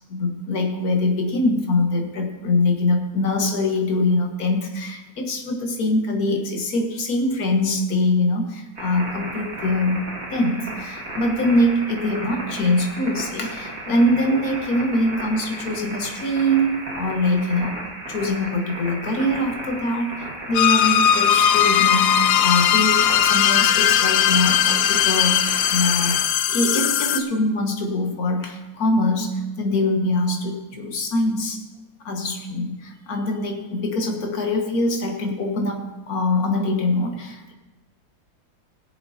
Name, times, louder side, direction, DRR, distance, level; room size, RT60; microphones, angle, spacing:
voice 1, 0.1-17.8 18.1-26.2 26.5-31.6 32.1-37.5, left 1 dB, 60° left, 3 dB, 1.9 m, -23 dB
sound 1, 8.7-26.2, right 1 dB, 55° right, 2.8 m, -34 dB
sound 2, 20.5-27.2, left 10 dB, 80° left, 1.2 m, -18 dB
19.5 x 7.0 x 4.2 m, 1.1 s
omnidirectional pair, 1.8 m